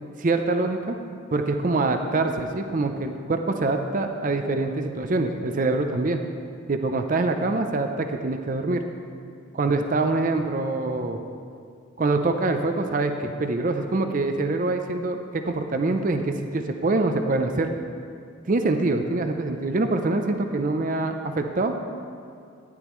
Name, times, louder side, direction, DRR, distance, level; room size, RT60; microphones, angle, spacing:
voice 1, 0.2-1.0 1.3-6.2 6.7-8.8 9.5-11.2 12.0-17.7 18.5-21.7, right 2 dB, 40° right, 6 dB, 0.5 m, -25 dB
13.0 x 10.0 x 3.1 m, 2.3 s
head